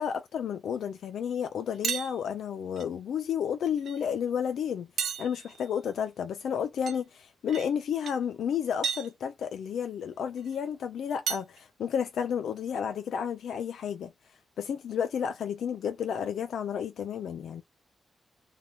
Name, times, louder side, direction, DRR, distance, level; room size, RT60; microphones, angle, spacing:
voice 1, 0.0-4.9 5.2-14.1 14.6-17.6, left 8 dB, 85° left, 0.3 m, -31 dB
sound 1, 1.8-2.1 2.8-2.9 3.8-4.0 5.0-5.7 6.9-7.0 7.5-7.7 8.0-8.1 8.8-9.1 10.5-10.6 11.3-11.6, right 7 dB, 80° right, 0.4 m, -32 dB
2.8 x 2.2 x 2.8 m
wide cardioid pair, 130°, 0 cm